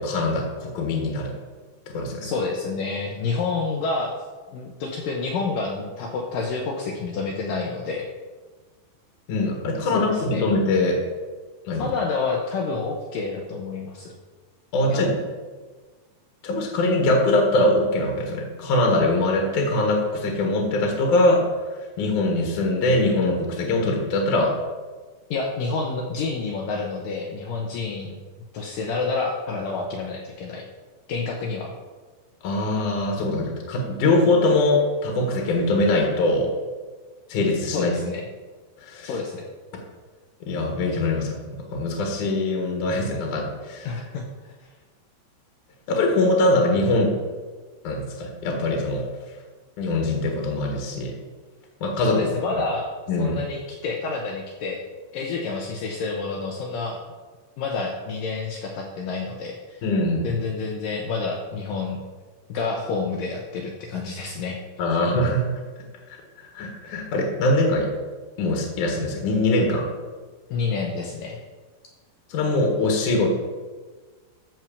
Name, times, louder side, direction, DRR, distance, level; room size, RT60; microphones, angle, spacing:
voice 1, 0.0-1.3 1.9-2.3 9.3-11.0 11.7-11.9 14.7-15.1 16.4-21.5 21.8-24.5 32.4-36.5 37.3-37.9 38.8-39.1 40.4-43.9 45.9-47.2 47.8-49.1 49.8-51.1 51.8-52.2 53.1-53.4 59.8-60.3 64.8-65.5 66.4-67.9 68.4-69.9 72.3-73.3, left 2 dB, 60° left, 1 dB, 2.4 m, -22 dB
voice 2, 2.2-4.2 4.5-8.1 9.9-10.5 11.8-14.1 14.9-15.1 25.3-28.2 28.5-30.6 31.1-31.7 37.7-38.2 39.0-39.5 43.8-44.5 52.1-52.9 53.2-54.8 55.1-57.0 57.6-59.9 60.2-62.0 62.5-64.6 70.5-71.4, left 4 dB, 80° left, 1 dB, 2.0 m, -28 dB
13.5 x 4.6 x 7.0 m, 1.4 s
omnidirectional pair, 5.2 m